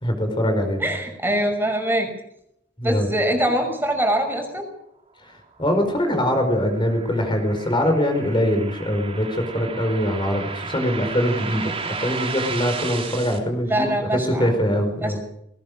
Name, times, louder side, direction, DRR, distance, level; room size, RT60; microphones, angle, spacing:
voice 1, 0.0-0.8 2.8-3.1 5.2-5.3 5.6-11.7 12.0-15.2, equal, 30° left, 5 dB, 5.0 m, -23 dB
voice 2, 0.8-2.1 2.8-4.6 13.7-14.5 15.0-15.2, right 1 dB, 10° right, 4 dB, 6.0 m, -23 dB
sound 1, 5.6-13.4, right 4 dB, 30° right, 3.6 m, -34 dB
20.0 x 20.0 x 6.4 m, 0.76 s
head